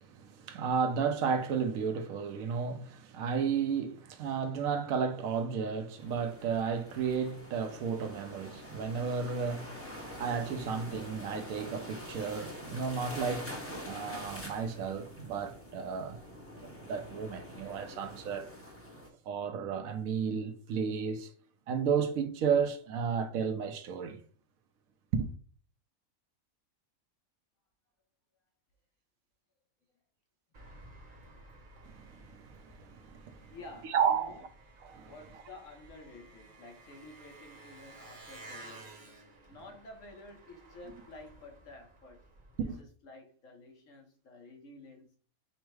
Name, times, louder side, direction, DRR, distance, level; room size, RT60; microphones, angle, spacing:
voice 1, 0.0-16.2 16.8-18.5 19.3-21.3 21.7-24.2 25.1-25.3 31.8-33.5 33.8-34.3 34.8-35.1 42.7-42.8, right 6 dB, 75° right, 1.0 m, -33 dB
sound 1, 6.0-19.1, left 1 dB, 10° left, 0.7 m, -45 dB
Engine, 30.5-42.7, right 2 dB, 40° right, 0.9 m, -54 dB
voice 2, 33.5-34.4 35.0-39.1 39.5-42.2 42.6-45.2, left 2 dB, 65° left, 1.3 m, -51 dB
5.4 x 2.1 x 4.6 m
omnidirectional pair, 1.5 m